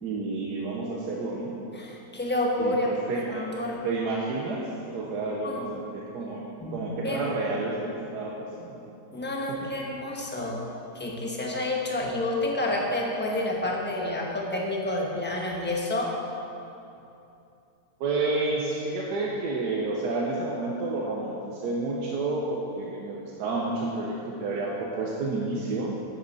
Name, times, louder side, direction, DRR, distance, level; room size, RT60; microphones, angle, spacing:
voice 1, 0.0-1.5 2.6-3.5 3.8-6.5 6.7-8.8 9.5-9.7 18.0-26.0, right 3 dB, 90° right, -2 dB, 1.4 m, -30 dB
voice 2, 1.7-3.0 3.3-3.8 5.4-5.6 6.6-7.3 9.1-10.6 10.9-16.2, left 1 dB, 10° left, -2 dB, 0.9 m, -29 dB
10.0 x 8.8 x 4.0 m, 2.8 s
omnidirectional pair, 1.7 m